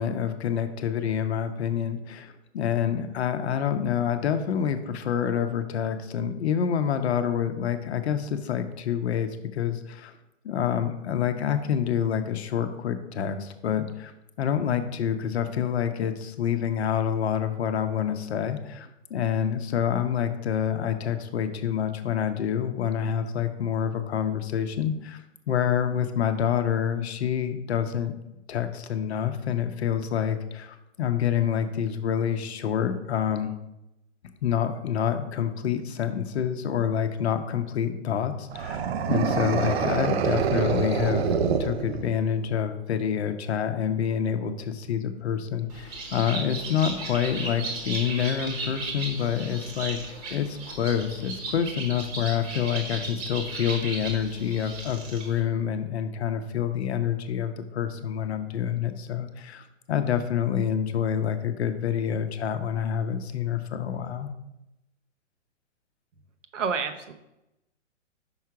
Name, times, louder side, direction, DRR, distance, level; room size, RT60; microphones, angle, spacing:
voice 1, 0.0-10.1 10.4-14.1 14.4-25.2 25.5-28.1 28.5-33.5 34.4-50.0 50.3-64.3, left 8 dB, 55° left, 8 dB, 0.8 m, -27 dB
sound 1, 38.5-42.4, right 6 dB, 55° right, 0.6 m, -26 dB
Bird, 45.7-55.4, right 3 dB, 30° right, 1.1 m, -36 dB
voice 2, 66.5-67.1, right 5 dB, 75° right, 8 dB, 0.9 m, -28 dB
5.6 x 4.6 x 4.7 m, 0.90 s
hypercardioid pair, 140°, 38 cm